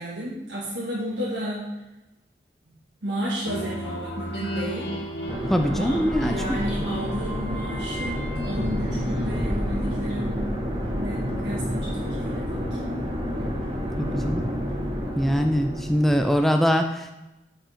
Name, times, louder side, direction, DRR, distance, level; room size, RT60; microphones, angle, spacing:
voice 1, 0.0-1.8 2.6-2.7 3.0-5.0 5.6-10.5 11.0-12.9, right 1 dB, 85° right, -7 dB, 1.5 m, -32 dB
sound 1, 3.4-10.0, left 1 dB, 85° left, 1.7 m, -35 dB
sound 2, 5.3-16.2, equal, 30° right, 1.3 m, -29 dB
voice 2, 5.5-6.3 14.0-14.4 15.2-17.1, equal, ahead, 4 dB, 0.3 m, -22 dB
7.7 x 5.6 x 4.2 m, 1.0 s
head